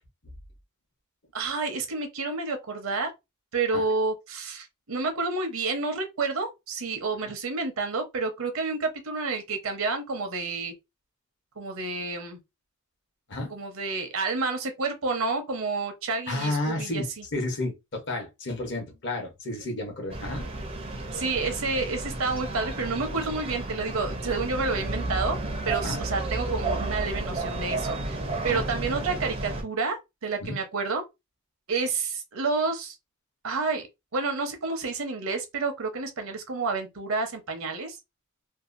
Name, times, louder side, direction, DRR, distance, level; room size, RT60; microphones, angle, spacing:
voice 1, 1.3-3.1 3.5-10.7 11.6-12.4 13.5-17.2 21.1-25.4 25.7-28.2 28.4-31.0 31.7-33.0 33.4-33.8 34.1-38.0, right 4 dB, 70° right, 0.8 m, -29 dB
voice 2, 16.3-20.5 25.8-26.0 28.5-28.6 30.4-30.6, left 2 dB, 55° left, 0.9 m, -31 dB
sound 1, 20.1-29.6, right 2 dB, 25° right, 0.5 m, -32 dB
2.7 x 2.3 x 2.5 m
head